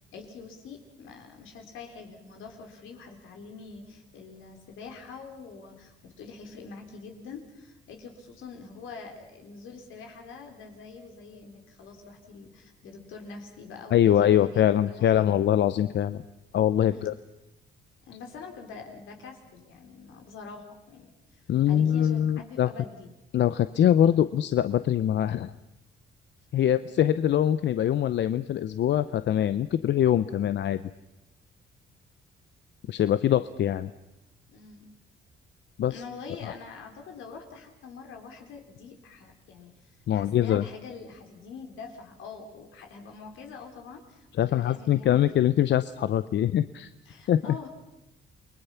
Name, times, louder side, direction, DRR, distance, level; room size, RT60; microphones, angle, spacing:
voice 1, 0.0-15.4 16.9-17.1 18.1-23.1 26.6-26.7 34.5-34.9 35.9-45.3 47.1-47.7, left 4 dB, 80° left, 3 dB, 4.1 m, -45 dB
voice 2, 13.9-16.2 16.5-17.1 21.5-22.7 23.3-25.5 26.5-30.8 32.9-33.9 35.8-36.0 36.4-36.5 40.1-40.6 44.4-46.9 47.3-47.4, left 10 dB, 65° left, 13 dB, 0.7 m, -23 dB
29.0 x 20.5 x 5.9 m, 0.94 s
cardioid pair, 90°, 20 cm